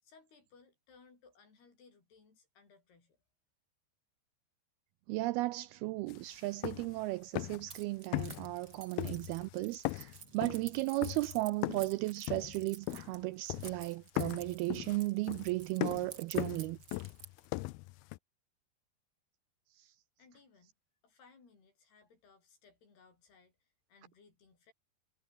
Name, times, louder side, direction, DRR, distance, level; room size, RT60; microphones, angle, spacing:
voice 1, 0.0-3.2 20.2-20.7 21.0-24.7, left 5 dB, 70° left, 8.6 m, -63 dB
voice 2, 5.1-16.8 19.8-19.9, right 20 dB, 85° right, 2.3 m, -35 dB
sound 1, 6.1-6.2 6.5-7.0 7.3-7.8 8.1-8.7 9.0-9.5 9.9-12.0 12.3-13.2 13.5-13.9 14.2-18.2, left 21 dB, 85° left, 2.2 m, -38 dB
Keys jangling, 7.7-17.5, right 7 dB, 45° right, 1.5 m, -52 dB
omnidirectional pair, 4.9 m